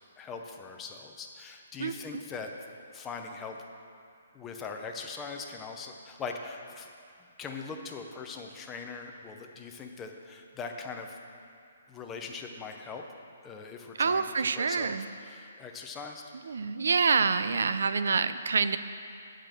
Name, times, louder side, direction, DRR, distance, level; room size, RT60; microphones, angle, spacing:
voice 1, 0.2-2.5 2.9-3.6 4.3-6.9 7.4-11.2 11.9-13.0 13.4-15.0 15.2-16.2, left 4 dB, 10° left, 2 dB, 0.6 m, -41 dB
voice 2, 1.8-2.2 14.0-15.1 16.4-18.8, right 5 dB, 75° right, 12 dB, 0.4 m, -27 dB
8.6 x 5.1 x 7.6 m, 2.4 s
hypercardioid pair, 170°, 0 cm